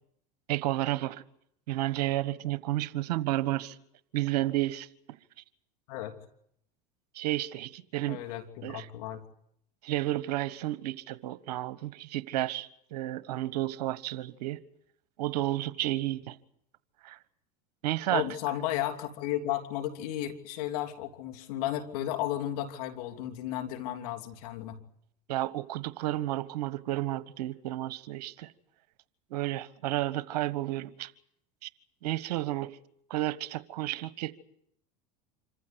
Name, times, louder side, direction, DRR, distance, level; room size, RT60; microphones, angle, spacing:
voice 1, 0.5-1.2 1.7-3.8 4.1-4.9 7.1-8.2 8.6-8.9 9.8-14.6 15.2-16.4 17.0-17.2 17.8-18.2 25.3-28.5 29.3-31.1 31.6-31.7 32.0-32.8 33.1-34.3, right 15 dB, 75° right, 1.3 m, -31 dB
voice 2, 8.1-9.2 18.1-24.8, left 13 dB, 70° left, 3.0 m, -34 dB
26.5 x 15.0 x 10.0 m
hypercardioid pair, 95°, 20 cm